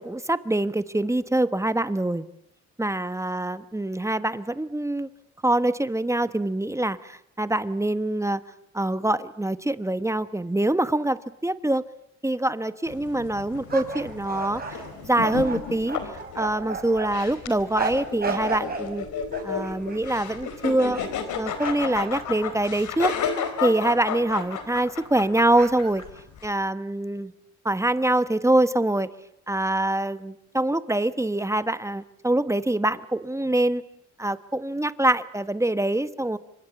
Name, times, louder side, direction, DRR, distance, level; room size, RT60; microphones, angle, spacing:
voice 1, 0.0-2.2 2.8-5.1 5.4-8.4 8.7-11.8 12.2-16.0 16.4-19.1 19.4-21.0 21.4-23.1 23.6-26.0 26.4-27.3 27.6-29.1 29.5-33.8 34.2-36.4, right 1 dB, 10° right, 13 dB, 1.2 m, -24 dB
sound 1, 12.9-26.5, left 7 dB, 75° left, 4.1 m, -33 dB
sound 2, 13.7-17.1 17.8-18.9 19.3-20.1 20.8-21.3 21.6-23.2 23.6-23.8 24.3-24.5 25.6-26.0, right 4 dB, 30° right, 7.5 m, -34 dB
28.0 x 25.0 x 8.4 m, 0.76 s
cardioid pair, 90°, 30 cm